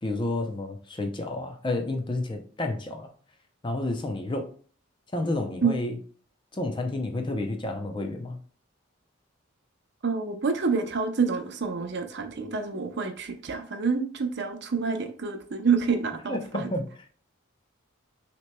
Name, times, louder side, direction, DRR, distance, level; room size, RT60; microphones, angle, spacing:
voice 1, 0.0-3.1 3.6-4.5 5.1-6.0 6.5-8.4 16.3-16.8, left 2 dB, 25° left, 5 dB, 0.5 m, -30 dB
voice 2, 10.0-16.7, right 5 dB, 55° right, 5 dB, 0.6 m, -27 dB
6.0 x 2.9 x 2.2 m, 0.44 s
head